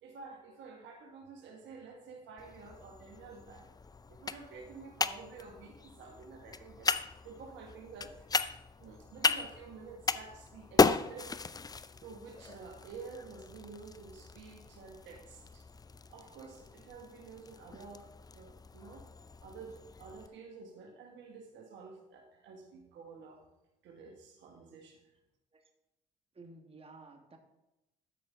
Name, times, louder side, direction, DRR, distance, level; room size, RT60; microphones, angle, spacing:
voice 1, 0.0-3.7 4.1-8.3 8.8-11.4 11.7-15.7 16.1-19.1 19.4-23.5 23.8-25.1, right 4 dB, 75° right, 2 dB, 1.6 m, -50 dB
sound 1, 2.4-20.3, left 4 dB, 20° left, 0.4 m, -36 dB
voice 2, 26.3-27.4, right 3 dB, 30° right, 4 dB, 1.4 m, -53 dB
12.5 x 5.3 x 3.6 m, 0.92 s
supercardioid pair, 60°, 19 cm